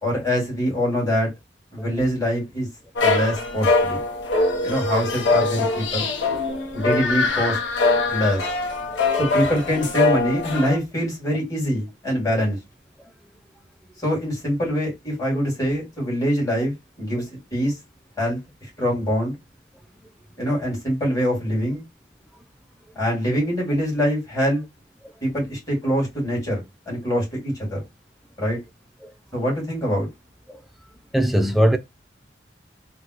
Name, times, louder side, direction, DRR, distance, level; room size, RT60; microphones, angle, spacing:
voice 1, 0.0-1.3 1.7-2.7 3.0-4.0 4.6-6.1 6.7-7.6 8.1-8.4 9.2-12.6 14.0-17.2 17.5-17.7 18.2-18.4 18.8-19.4 20.4-21.8 23.0-24.6 25.2-27.8 28.4-28.6 29.3-30.1, equal, 20° left, 2.2 m, -24 dB
sound 1, 3.0-10.8, left 3 dB, 80° left, 0.7 m, -22 dB
voice 2, 31.1-31.8, equal, ahead, 0.3 m, -21 dB
3.8 x 2.1 x 2.9 m
head